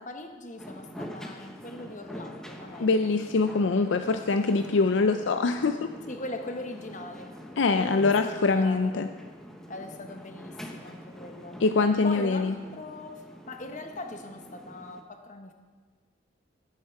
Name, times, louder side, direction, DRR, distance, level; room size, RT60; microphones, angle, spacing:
voice 1, 0.0-2.9 6.1-9.1 9.7-11.6 12.0-15.5, left 2 dB, 40° left, 5 dB, 1.1 m, -40 dB
sound 1, 0.6-15.0, equal, 5° left, 0.9 m, -45 dB
voice 2, 2.8-5.9 7.6-9.1 11.6-12.5, left 3 dB, 65° left, 8 dB, 0.4 m, -24 dB
17.0 x 8.3 x 4.6 m, 1.5 s
head